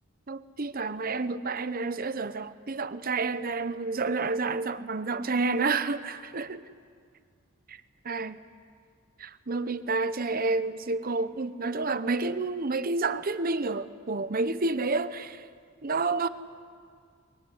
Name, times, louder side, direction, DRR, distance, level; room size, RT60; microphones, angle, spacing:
voice 1, 0.3-6.6 7.7-7.8 8.0-8.4 9.2-15.4 15.8-16.3, right 3 dB, 45° right, 0.9 m, -29 dB
23.5 x 23.0 x 9.6 m
head